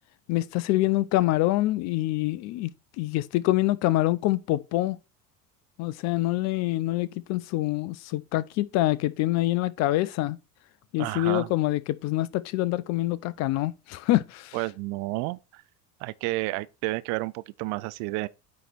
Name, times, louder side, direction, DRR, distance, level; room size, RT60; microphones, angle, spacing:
voice 1, 0.3-2.7 3.0-5.0 5.8-10.4 10.9-14.6, left 17 dB, 35° left, 0.4 m, -25 dB
voice 2, 11.0-11.5 14.5-15.6 16.0-18.3, right 21 dB, 40° right, 0.4 m, -31 dB
8.9 x 3.1 x 4.2 m
figure-of-eight pair, 65°, 49 cm